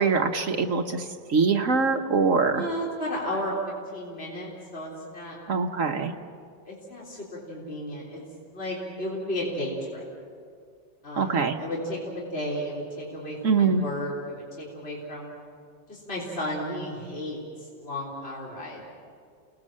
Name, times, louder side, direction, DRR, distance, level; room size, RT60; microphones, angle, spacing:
voice 1, 0.0-2.6 5.5-6.1 11.2-11.6 13.4-13.8, right 4 dB, 50° right, 4 dB, 1.2 m, -23 dB
voice 2, 2.5-5.4 6.2-6.4 6.6-8.2 8.5-10.0 11.0-15.3 15.9-18.9, equal, 30° left, -5 dB, 4.0 m, -33 dB
30.0 x 19.5 x 7.6 m, 2.2 s
omnidirectional pair, 2.1 m